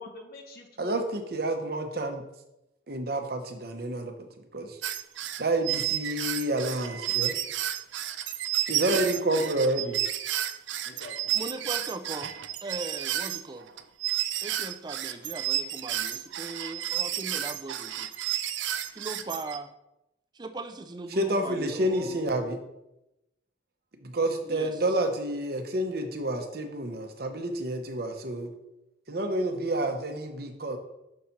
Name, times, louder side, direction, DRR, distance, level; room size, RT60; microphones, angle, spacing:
voice 1, 0.0-1.0 8.9-10.0 10.8-11.6, left 3 dB, 55° left, 2 dB, 0.8 m, -46 dB
voice 2, 0.8-2.2 2.9-4.1 4.5-4.8 5.4-7.4 8.7-10.0 21.1-22.6 24.0-28.5 29.1-30.8, right 1 dB, 55° right, 5 dB, 0.9 m, -29 dB
sound 1, 4.8-19.6, right 12 dB, 80° right, 0.5 m, -31 dB
voice 3, 11.4-12.3 12.6-13.7 14.4-18.1 18.9-19.7 20.3-22.2 24.5-24.8, right 2 dB, 25° right, 8 dB, 0.4 m, -39 dB
6.4 x 4.2 x 5.8 m, 0.90 s
head